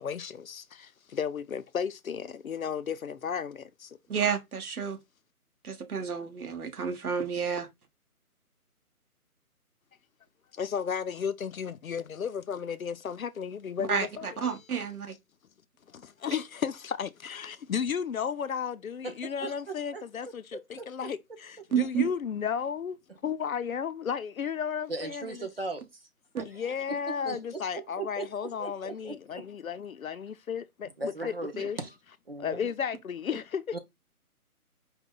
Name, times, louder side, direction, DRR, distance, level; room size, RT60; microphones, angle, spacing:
voice 1, 0.0-4.0 10.5-14.3 15.9-23.0 23.2-25.5 26.5-31.8 32.4-33.8, left 7 dB, 65° left, 0.6 m, -34 dB
voice 2, 4.1-5.0 5.6-7.7 13.8-15.2 21.7-22.1 26.3-26.4 31.5-31.7, right 7 dB, 75° right, 1.2 m, -30 dB
voice 3, 19.0-19.5 19.9-21.1 24.9-26.0 26.4-29.4 31.0-31.5 31.8-31.9 32.3-32.7 33.7-33.8, right 3 dB, 40° right, 0.8 m, -39 dB
4.8 x 2.2 x 3.8 m
hypercardioid pair, 175°, 45 cm